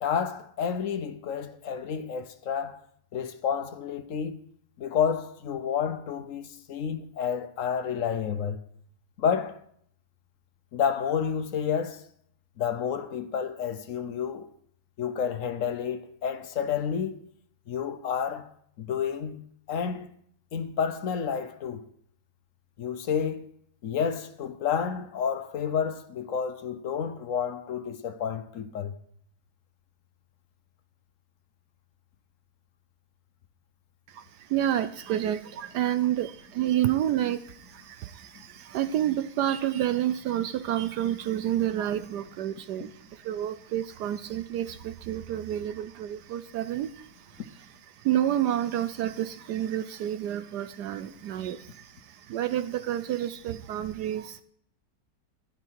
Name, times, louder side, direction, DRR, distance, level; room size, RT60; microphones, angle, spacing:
voice 1, 0.0-2.8 3.1-4.4 4.8-8.6 9.2-9.6 10.7-12.0 12.6-14.5 15.0-17.3 17.7-18.5 18.8-20.1 20.5-21.9 22.8-23.5 23.8-29.0, left 7 dB, 55° left, 1.0 m, -30 dB
voice 2, 34.1-54.4, right 11 dB, 75° right, 1.1 m, -29 dB
12.0 x 10.5 x 4.7 m
omnidirectional pair, 1.9 m